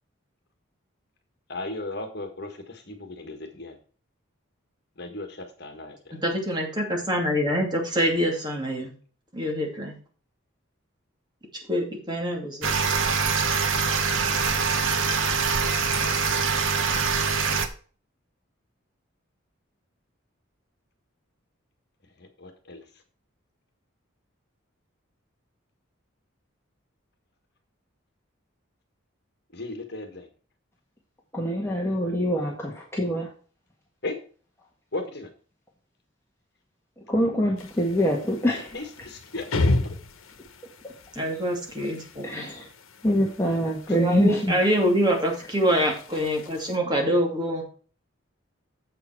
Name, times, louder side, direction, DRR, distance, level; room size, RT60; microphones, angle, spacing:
voice 1, 1.5-3.7 5.0-6.2 22.2-22.8 29.5-30.3 34.0-34.1 34.9-35.3 38.7-39.5 43.9-44.0, left 2 dB, 55° left, 6 dB, 1.6 m, -36 dB
voice 2, 6.2-8.9 9.3-10.0 11.7-12.7 41.2-42.4 43.9-47.6, equal, 20° right, 0 dB, 2.5 m, -25 dB
sound 1, 12.6-17.7, right 5 dB, 75° right, 1.1 m, -24 dB
voice 3, 31.3-33.3 37.1-38.9 40.8-40.9 42.2-42.7 43.0-44.6, equal, 15° left, -2 dB, 1.6 m, -25 dB
sound 2, 37.6-46.8, left 2 dB, 90° left, 1.1 m, -34 dB
7.8 x 7.0 x 4.5 m, 0.40 s
head